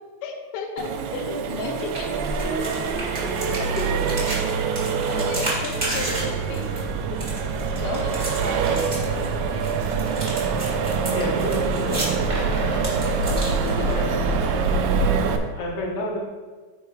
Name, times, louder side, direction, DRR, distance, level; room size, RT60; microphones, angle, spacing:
voice 1, 0.2-2.7 5.1-7.2 7.7-9.6 13.0-14.4, left 4 dB, 75° left, 3 dB, 2.2 m, -35 dB
Accelerating revving vroom, 0.8-15.4, right 5 dB, 80° right, 1.7 m, -25 dB
sound 1, 1.7-14.2, right 1 dB, 50° right, 0.5 m, -33 dB
voice 2, 3.6-4.2 7.8-8.0 11.1-12.0 13.8-14.3 15.2-16.2, left 1 dB, 60° left, -2 dB, 1.6 m, -30 dB
6.3 x 4.6 x 4.8 m, 1.4 s
omnidirectional pair, 3.9 m